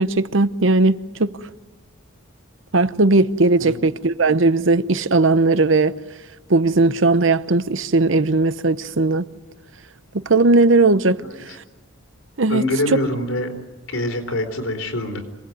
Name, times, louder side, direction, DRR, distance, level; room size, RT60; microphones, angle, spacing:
voice 1, 0.0-1.3 2.7-5.9 6.5-9.3 10.1-11.2 12.4-13.0, right 3 dB, 65° right, 0.9 m, -17 dB
voice 2, 12.5-13.5 13.9-15.2, left 1 dB, 80° left, 4.1 m, -24 dB
27.0 x 19.0 x 9.4 m
head